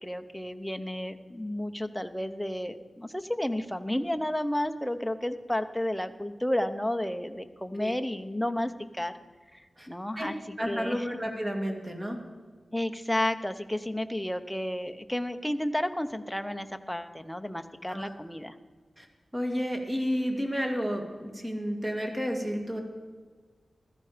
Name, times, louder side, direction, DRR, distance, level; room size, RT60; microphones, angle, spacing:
voice 1, 0.0-9.1 9.5-10.3 10.7-11.0 12.7-18.6, left 1 dB, 5° left, 7 dB, 0.8 m, -32 dB
voice 2, 10.6-12.2 17.9-18.1 19.0-19.1 19.3-22.8, equal, 20° right, 3 dB, 2.2 m, -31 dB
15.5 x 14.0 x 5.0 m, 1.5 s
wide cardioid pair, 110°, 0 cm